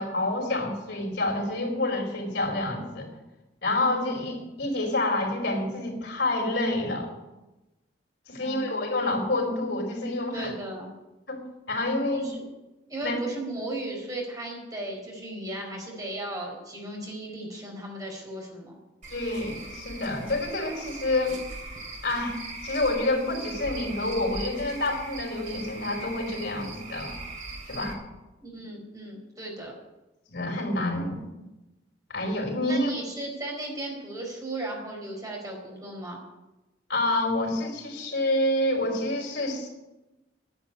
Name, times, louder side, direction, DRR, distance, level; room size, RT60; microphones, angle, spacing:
voice 1, 0.0-3.1 3.6-7.1 8.3-10.5 11.3-11.4 11.7-12.3 13.0-13.2 19.1-21.4 22.0-22.4 22.6-27.1 27.7-28.0 30.3-31.3 32.1-32.9 36.9-39.7, left 2 dB, 70° left, 0 dB, 4.6 m, -28 dB
voice 2, 8.4-8.8 10.3-10.9 12.1-12.4 12.9-18.7 28.4-29.7 32.7-36.2, right 1 dB, 20° right, 0 dB, 4.2 m, -36 dB
Cricket / Frog, 19.0-27.9, right 2 dB, 45° right, 3.2 m, -40 dB
10.5 x 10.5 x 9.9 m, 1.0 s
head